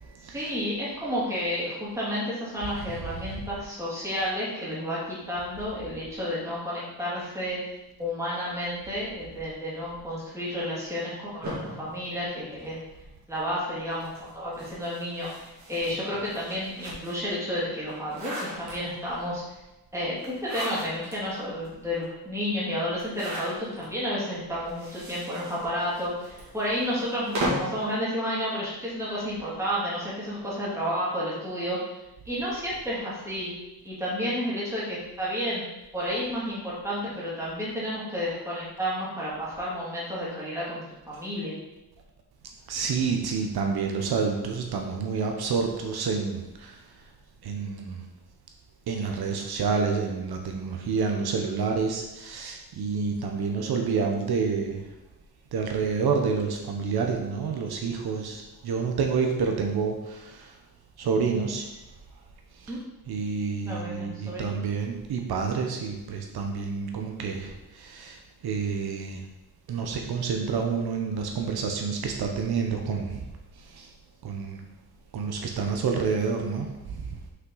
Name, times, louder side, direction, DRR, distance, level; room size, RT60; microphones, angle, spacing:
voice 1, 0.3-7.6 8.0-12.8 13.3-14.1 14.3-19.4 19.9-31.8 32.3-33.5 33.8-35.6 35.9-41.5 62.7-62.8 63.6-64.6, equal, 10° right, -8 dB, 2.3 m, -31 dB
sound 1, 11.4-13.0 13.9-17.3 17.8-19.2 20.2-21.1 21.6-21.7 21.9-22.0 22.9-23.9 24.6-27.8, right 1 dB, 45° right, 2.1 m, -36 dB
voice 2, 42.7-46.8 47.4-48.1 48.9-54.8 55.5-60.5 61.0-61.7 63.1-69.2 69.7-73.2 73.7-73.9 74.2-74.6 75.1-77.0, right 5 dB, 75° right, 3 dB, 0.9 m, -28 dB
5.9 x 5.7 x 3.9 m, 0.99 s
wide cardioid pair, 180°, 38 cm